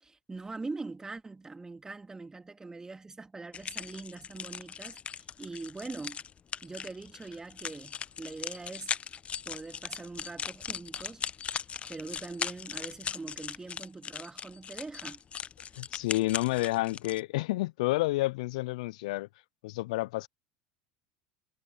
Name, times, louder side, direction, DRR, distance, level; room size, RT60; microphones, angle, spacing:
voice 1, 0.0-6.2 6.6-8.9 9.4-11.2 11.9-15.2, right 3 dB, 15° right, 2.7 m, -42 dB
sound 1, 3.5-17.2, left 7 dB, 30° left, 0.8 m, -39 dB
voice 2, 15.8-19.3 19.6-20.3, left 19 dB, 70° left, 0.6 m, -30 dB
hypercardioid pair, 80°, 4 cm